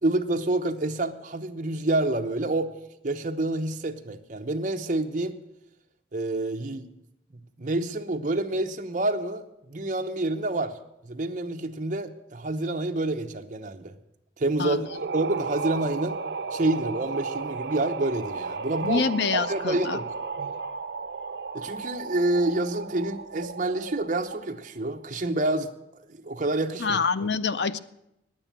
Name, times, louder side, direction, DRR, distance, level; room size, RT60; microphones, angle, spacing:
voice 1, 0.0-2.7 3.0-5.4 6.1-6.9 7.6-10.7 11.0-14.0 14.4-16.2 16.5-19.0 19.3-20.1 21.5-25.7 26.1-27.0, right 2 dB, 45° right, 5 dB, 0.9 m, -28 dB
sound 1, 14.8-24.6, right 4 dB, 70° right, 0.6 m, -34 dB
voice 2, 18.8-20.0 26.8-27.8, left 5 dB, 70° left, 14 dB, 0.5 m, -26 dB
10.0 x 8.8 x 8.8 m, 0.84 s
head